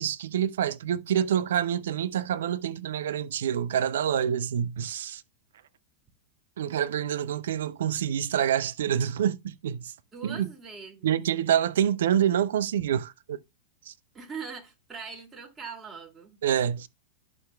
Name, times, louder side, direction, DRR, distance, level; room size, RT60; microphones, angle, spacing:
voice 1, 0.0-5.2 6.6-9.9 10.2-10.5 11.0-13.4 13.9-14.0 16.4-16.9, right 9 dB, 60° right, 0.5 m, -27 dB
voice 2, 10.1-11.2 14.1-16.4, right 5 dB, 20° right, 2.4 m, -41 dB
11.0 x 6.0 x 2.3 m
figure-of-eight pair, 90°, 0 cm